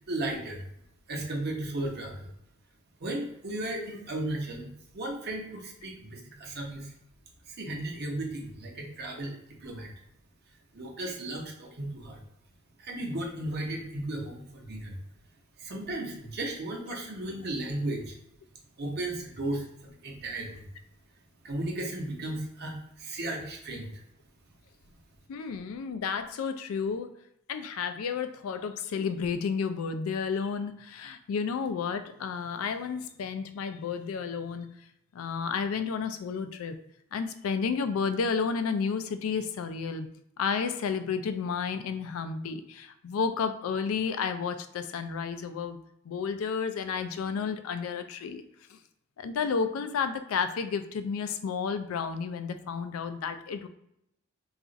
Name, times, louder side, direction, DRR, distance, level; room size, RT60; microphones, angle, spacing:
voice 1, 0.1-0.6 1.1-2.3 3.0-6.9 7.5-9.9 10.7-12.2 12.8-15.0 15.6-18.1 18.8-20.7 21.4-23.9, right 1 dB, 50° right, 0 dB, 0.8 m, -35 dB
voice 2, 25.3-27.1 27.5-34.7 35.1-36.8 37.1-40.1 40.4-45.8 46.1-48.4 48.7-48.8 49.2-53.7, left 5 dB, 80° left, 9 dB, 0.3 m, -31 dB
2.4 x 2.4 x 3.9 m, 0.78 s
head